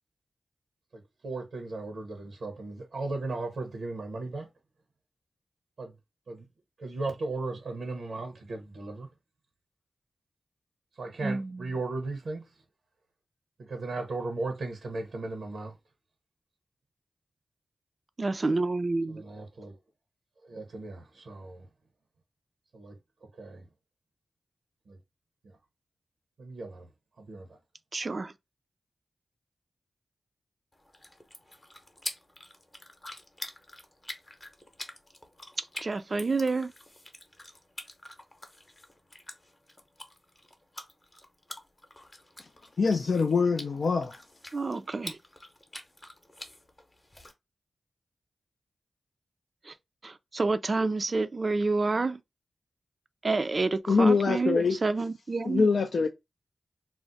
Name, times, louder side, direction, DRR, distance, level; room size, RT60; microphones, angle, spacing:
voice 1, 0.9-4.5 5.8-5.9 6.3-6.4 6.8-9.1 11.0-12.4 13.6-15.7 19.1-19.8 20.4-21.7 22.7-23.0 23.4-23.6 24.9-25.0 26.4-26.9 27.2-27.5, right 3 dB, 85° right, 0.7 m, -36 dB
voice 2, 11.2-11.8 18.2-19.2 27.9-28.3 35.8-36.7 44.5-45.2 49.7-49.8 50.0-52.2 53.2-55.7, right 3 dB, 50° right, 0.3 m, -29 dB
sound 1, 30.7-47.3, left 1 dB, 25° left, 0.7 m, -46 dB
voice 3, 42.8-44.2 53.9-54.8 55.5-56.1, left 4 dB, 70° left, 0.3 m, -24 dB
2.4 x 2.0 x 3.8 m
cardioid pair, 60°, 0 cm